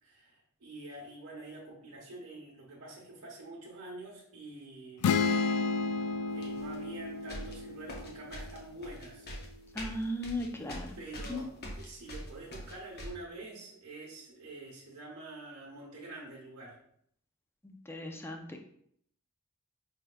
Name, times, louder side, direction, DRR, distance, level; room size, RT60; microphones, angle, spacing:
voice 1, 0.0-5.5 6.3-9.3 10.9-16.8, right 2 dB, 80° right, -4 dB, 1.0 m, -47 dB
sound 1, 5.0-8.8, left 5 dB, 85° left, 0.3 m, -32 dB
sound 2, 6.4-6.7 7.3-13.1, left 1 dB, 50° left, 0.8 m, -43 dB
voice 2, 9.7-10.9 11.3-11.4 17.6-18.6, left 1 dB, 10° left, 3 dB, 0.4 m, -37 dB
5.8 x 3.4 x 2.3 m, 0.67 s
head